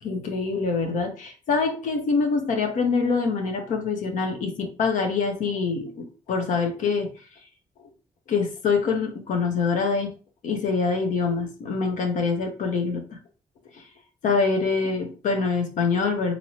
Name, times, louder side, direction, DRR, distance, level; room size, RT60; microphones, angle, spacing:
voice 1, 0.0-7.1 8.3-10.1 10.4-13.0 13.7-13.9 14.2-16.3, left 4 dB, 75° left, 4 dB, 0.7 m, -25 dB
2.9 x 2.9 x 2.7 m, 0.36 s
supercardioid pair, 55°, 13 cm